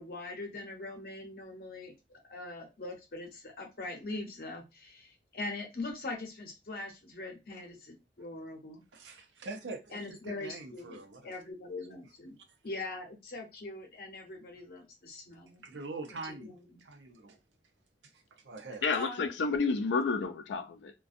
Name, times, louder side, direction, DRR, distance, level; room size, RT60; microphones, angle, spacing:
voice 1, 0.0-1.9 2.3-8.8 9.9-12.4 12.6-15.8 16.2-16.6 18.9-19.3, left 2 dB, 55° left, 0.7 m, -42 dB
voice 2, 8.9-11.4 15.6-16.5 16.8-17.4 18.1-18.9, right 3 dB, 90° right, 0.6 m, -44 dB
voice 3, 18.8-20.9, left 4 dB, 85° left, 0.4 m, -30 dB
2.5 x 2.2 x 2.5 m
head